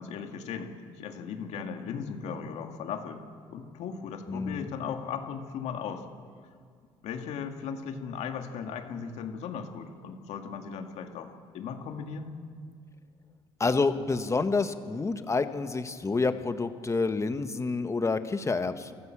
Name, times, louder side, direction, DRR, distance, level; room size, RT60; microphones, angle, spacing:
voice 1, 0.0-3.2 3.5-6.1 7.0-12.4, left 6 dB, 75° left, 4 dB, 2.2 m, -37 dB
voice 2, 4.3-4.7 13.6-18.9, left 4 dB, 25° left, 9 dB, 1.6 m, -28 dB
24.5 x 15.0 x 7.6 m, 2.1 s
supercardioid pair, 75°, 12 cm